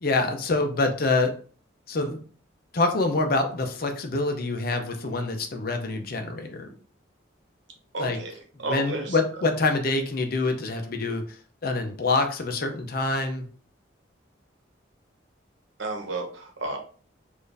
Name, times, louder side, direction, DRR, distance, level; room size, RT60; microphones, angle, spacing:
voice 1, 0.0-1.4 1.9-2.2 2.7-6.7 8.0-8.2 8.7-11.2 11.6-13.5, left 3 dB, 50° left, 5 dB, 0.6 m, -26 dB
voice 2, 7.9-9.2 15.8-16.8, right 2 dB, 70° right, 2 dB, 1.0 m, -32 dB
4.2 x 2.6 x 3.3 m, 0.42 s
head